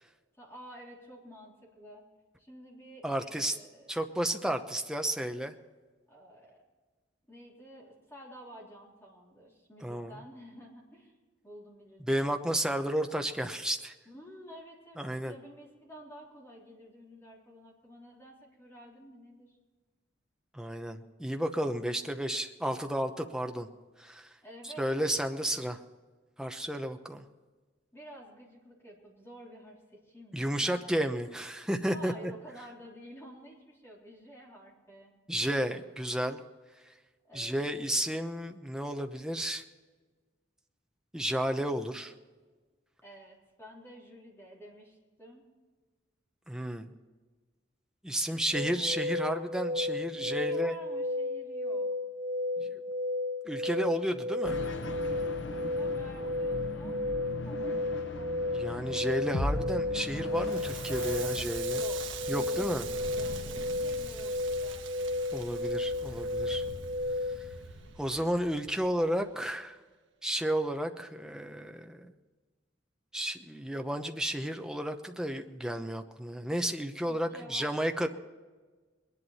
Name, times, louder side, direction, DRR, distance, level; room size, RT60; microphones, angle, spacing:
voice 1, 0.4-2.0 2.4-3.9 6.1-6.6 7.3-11.2 11.4-12.2 14.1-19.6 24.4-24.9 27.9-31.0 31.9-35.1 37.2-37.6 43.0-45.5 48.3-49.0 50.1-52.0 55.6-57.0 57.4-57.9 58.1-59.1 61.7-65.2 77.1-77.8, equal, 15° left, -3 dB, 3.7 m, -51 dB
voice 2, 3.0-3.6 3.9-5.5 9.8-10.1 12.1-13.9 15.0-15.3 20.5-23.7 24.0-24.3 24.6-25.8 26.4-27.2 30.3-32.1 35.3-36.4 37.3-39.6 41.1-42.1 46.5-46.9 48.0-50.7 52.6-52.8 53.4-54.6 58.5-61.8 62.3-62.9 65.3-66.6 67.4-67.5 68.0-69.8 70.2-72.1 73.1-78.1, equal, 5° right, 5 dB, 0.8 m, -32 dB
sound 1, 48.5-67.4, left 2 dB, 60° right, 1.6 m, -33 dB
sound 2, 54.4-61.4, left 1 dB, 80° left, 1.1 m, -38 dB
Crackle, 60.3-69.3, right 5 dB, 85° right, 1.3 m, -43 dB
21.5 x 11.0 x 4.2 m, 1.4 s
head